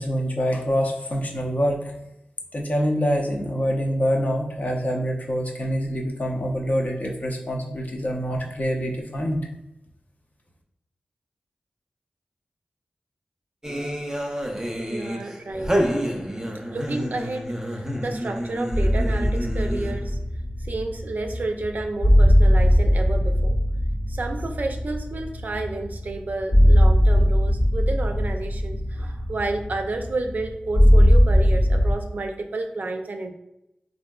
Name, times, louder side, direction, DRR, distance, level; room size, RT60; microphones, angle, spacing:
voice 1, 0.0-1.9 2.5-9.4, equal, 55° left, 0 dB, 0.6 m, -25 dB
sound 1, 13.6-20.1, equal, 15° right, 0.6 m, -29 dB
voice 2, 14.8-15.7 16.7-20.2 20.6-23.5 24.1-33.3, right 2 dB, 65° right, 5 dB, 0.4 m, -31 dB
sound 2, 18.7-31.9, equal, 85° left, 1.2 m, -20 dB
3.6 x 2.6 x 2.2 m, 0.87 s
cardioid pair, 50°, 3 cm